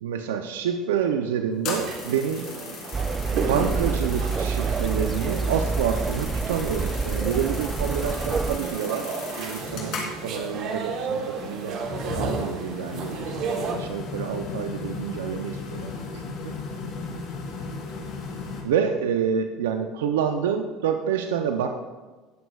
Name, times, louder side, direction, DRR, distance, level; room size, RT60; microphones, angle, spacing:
voice 1, 0.0-2.4 3.3-11.8 12.1-13.3 13.7-16.6 18.6-21.7, right 7 dB, 80° right, 7 dB, 0.6 m, -28 dB
sound 1, 1.5-18.6, left 4 dB, 60° left, 3.1 m, -37 dB
sound 2, 1.8-13.7, right 5 dB, 55° right, 1.3 m, -33 dB
sound 3, 2.9-8.6, right 4 dB, 25° right, 0.5 m, -27 dB
18.5 x 8.0 x 2.4 m, 1.3 s
hypercardioid pair, 75°, 0 cm